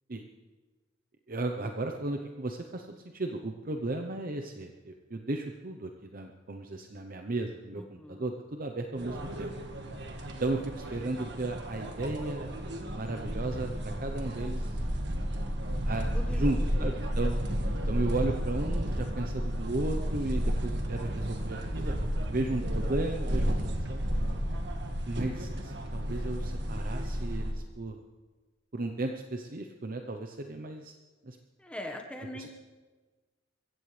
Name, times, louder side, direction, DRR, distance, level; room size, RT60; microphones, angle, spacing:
voice 1, 1.3-9.5 10.4-12.5 12.9-14.8 15.9-17.4 17.9-21.9 22.2-24.0 25.0-28.0 28.7-31.0 31.2-31.4 32.3-32.5, right 2 dB, 45° right, 4 dB, 0.8 m, -35 dB
sound 1, 9.0-27.5, equal, 65° right, 1.6 m, -32 dB
voice 2, 16.1-16.9 31.6-32.5, left 1 dB, 5° left, 2 dB, 1.4 m, -41 dB
23.0 x 15.5 x 3.3 m, 1.3 s
head